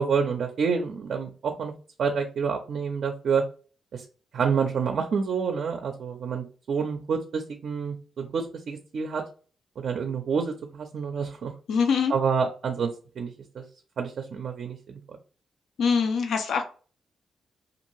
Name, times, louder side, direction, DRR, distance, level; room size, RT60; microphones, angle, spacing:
voice 1, 0.0-1.7 2.0-3.5 3.9-4.1 4.3-9.2 9.8-11.5 12.1-13.6 14.0-15.2, right 6 dB, 65° right, 4 dB, 0.4 m, -28 dB
voice 2, 11.7-12.1 15.8-16.6, left 6 dB, 80° left, 6 dB, 0.5 m, -23 dB
2.6 x 2.4 x 3.0 m, 0.38 s
cardioid pair, 125°, 0 cm